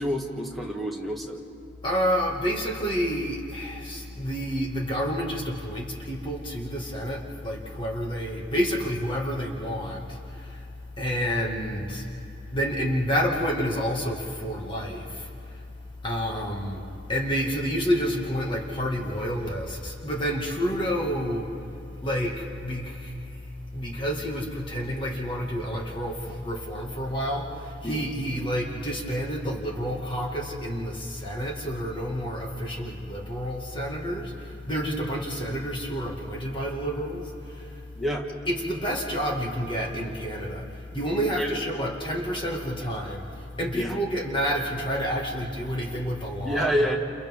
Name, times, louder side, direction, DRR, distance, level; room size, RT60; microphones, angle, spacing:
voice 1, 0.0-1.4 27.8-28.1 38.0-38.3 41.2-41.5 43.7-43.9 46.4-47.0, equal, ahead, -1 dB, 1.9 m, -28 dB
voice 2, 1.8-10.7 10.9-12.1 12.5-15.7 16.0-21.5 22.0-37.9 38.4-46.7, equal, 25° left, -1 dB, 2.1 m, -29 dB
29.5 x 29.0 x 3.7 m, 2.7 s
head